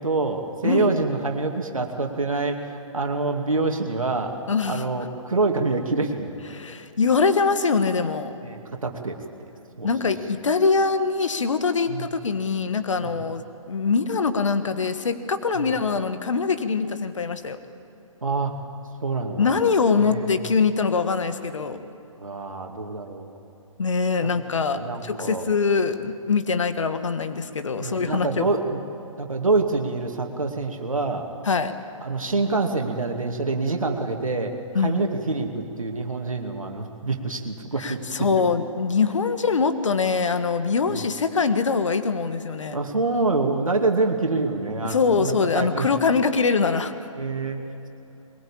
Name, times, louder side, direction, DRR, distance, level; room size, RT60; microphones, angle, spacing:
voice 1, 0.0-4.3 4.6-6.3 8.4-9.2 9.8-9.9 11.9-12.1 13.0-13.2 15.5-15.7 18.2-18.6 19.0-19.5 20.0-20.4 22.2-23.4 24.7-25.4 27.8-28.8 29.2-31.3 32.0-34.5 34.8-38.0 40.9-41.1 42.7-45.9 47.2-47.6, right 3 dB, 75° right, 3 dB, 2.4 m, -26 dB
voice 2, 4.5-4.8 6.5-8.3 9.8-17.6 19.4-21.8 23.8-28.5 31.4-31.7 34.7-35.0 37.8-42.8 44.8-46.9, left 5 dB, 65° left, 9 dB, 1.6 m, -23 dB
22.5 x 21.5 x 8.7 m, 2.9 s
figure-of-eight pair, 130°, 17 cm